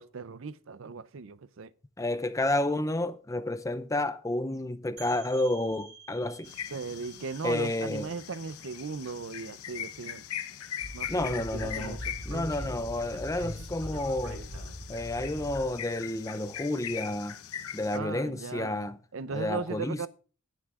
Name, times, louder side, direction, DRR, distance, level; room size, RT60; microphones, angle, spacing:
voice 1, 0.0-1.7 6.7-10.2 10.9-12.1 17.9-20.1, right 4 dB, 60° right, 0.5 m, -38 dB
voice 2, 2.0-6.5 7.4-8.1 11.1-12.0 12.3-14.4 14.9-17.4 17.7-19.0 19.3-20.1, left 1 dB, 15° left, 0.5 m, -30 dB
sound 1, 5.0-10.4, right 6 dB, 35° right, 3.1 m, -53 dB
sound 2, 6.4-18.0, left 9 dB, 85° left, 0.8 m, -41 dB
Speech, 10.8-15.7, equal, 90° right, 5.9 m, -40 dB
17.5 x 9.2 x 2.4 m
head